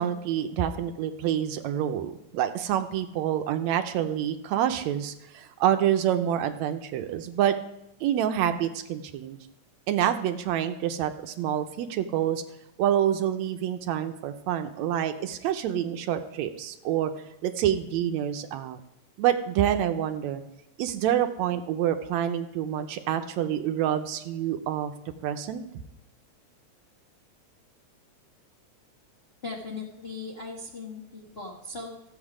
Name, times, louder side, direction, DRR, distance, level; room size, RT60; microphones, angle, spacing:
voice 1, 0.0-7.6 8.0-9.4 9.9-12.4 12.8-17.1 17.4-18.8 19.2-20.4 20.8-24.9 25.2-25.6, right 10 dB, 80° right, 8 dB, 1.8 m, -27 dB
voice 2, 29.4-32.1, left 3 dB, 80° left, -3 dB, 0.5 m, -38 dB
14.0 x 8.0 x 4.9 m, 0.85 s
omnidirectional pair, 3.4 m